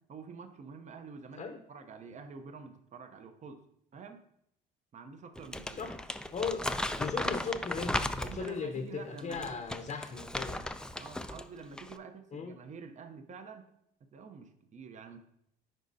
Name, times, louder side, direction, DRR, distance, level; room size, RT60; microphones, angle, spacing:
voice 1, 0.0-3.6 3.9-4.2 4.9-5.8 8.2-9.6 11.0-13.6 14.1-15.2, right 5 dB, 35° right, 7 dB, 0.8 m, -48 dB
Crumpling crinkling, 5.4-8.6 9.2-11.4 11.7-12.0, left 1 dB, 5° left, 0.3 m, -36 dB
voice 2, 6.3-6.6 7.0-10.6 12.3-12.6, left 5 dB, 35° left, 5 dB, 0.8 m, -37 dB
9.1 x 5.1 x 2.7 m, 0.73 s
supercardioid pair, 95°, 20 cm